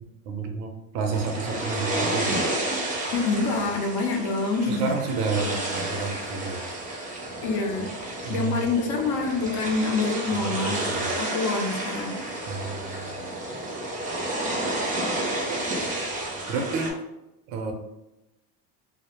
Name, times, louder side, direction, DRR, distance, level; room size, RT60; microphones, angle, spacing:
voice 1, 0.0-2.4 4.7-6.6 8.2-8.6 10.4-11.1 12.5-13.1 15.5-15.6 15.9-16.0 16.5-16.9 17.5-17.7, right 4 dB, 90° right, 4 dB, 0.6 m, -30 dB
sound 1, 1.1-16.9, right 1 dB, 20° right, 0.4 m, -31 dB
voice 2, 3.1-4.8 7.4-7.9 8.3-10.8 11.2-12.2, left 3 dB, 60° left, 2 dB, 0.6 m, -26 dB
2.1 x 2.0 x 2.8 m, 0.93 s
supercardioid pair, 125°, 45 cm